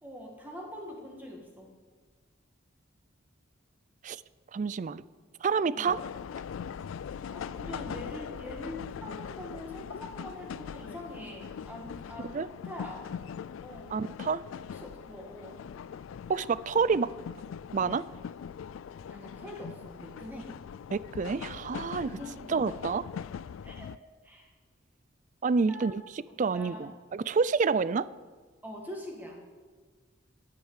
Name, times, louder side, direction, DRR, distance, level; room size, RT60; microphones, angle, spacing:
voice 1, 0.0-1.7 5.7-5.9 7.3-12.3 12.6-13.0 13.6-14.0 14.8-15.6 19.1-20.5 22.0-22.8 23.6-23.9 24.2-24.5 25.7-25.9 26.3-26.9 28.6-29.4, left 1 dB, 10° right, -1 dB, 1.7 m, -43 dB
voice 2, 4.5-5.0 5.4-6.0 12.3-12.5 13.9-14.4 16.3-17.1 17.7-18.1 20.9-22.1 22.5-23.0 25.4-28.1, right 5 dB, 40° right, 18 dB, 0.4 m, -28 dB
sound 1, 5.9-24.0, left 7 dB, 80° left, 0.3 m, -41 dB
10.5 x 9.0 x 8.2 m, 1.4 s
head